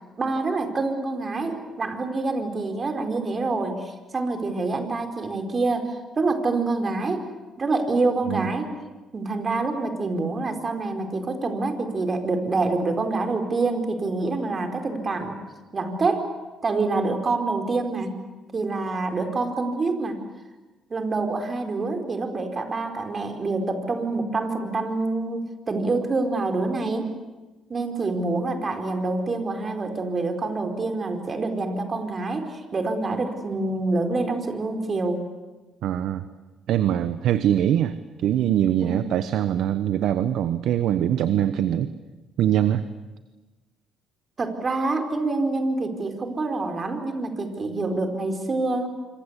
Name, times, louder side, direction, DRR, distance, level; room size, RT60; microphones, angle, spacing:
voice 1, 0.2-7.3 7.6-8.7 9.1-15.4 15.7-16.3 16.6-18.1 18.5-20.2 20.9-27.1 27.7-35.2 38.8-39.0 44.4-48.9, right 3 dB, 35° right, 6 dB, 4.8 m, -26 dB
voice 2, 35.8-36.2 36.7-38.0 38.2-41.9 42.4-42.8, right 10 dB, 75° right, 12 dB, 1.1 m, -22 dB
26.0 x 25.5 x 8.4 m, 1.2 s
supercardioid pair, 70°, 0 cm